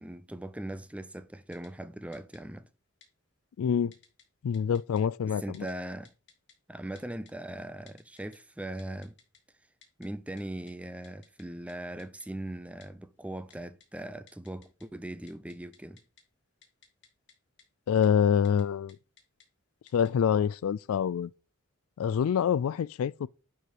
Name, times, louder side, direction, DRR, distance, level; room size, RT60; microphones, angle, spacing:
voice 1, 0.0-2.7 5.3-6.1 6.7-9.2 10.0-16.0, right 1 dB, 5° right, 0.5 m, -40 dB
Typing, 1.5-1.7 2.1-2.4 3.0-3.1 3.9-4.2 4.5-5.0 5.5-5.7 6.0-6.5 6.9-7.3 7.9-8.4 8.8-9.4 9.8-10.1 10.4-10.5 10.7-10.8 11.0-11.4 11.7-11.8 12.0-12.3 12.8-12.9 13.5-13.9 14.3-14.8 15.1-16.2 16.6-17.3 17.6-17.7 18.0-18.1 18.4-18.6 18.9-19.4 19.9-20.1, left 6 dB, 55° left, 2.5 m, -58 dB
voice 2, 3.6-3.9 4.4-5.7 17.9-19.0 19.9-21.3 22.0-23.3, left 7 dB, 80° left, 0.3 m, -26 dB
11.0 x 4.6 x 4.9 m
head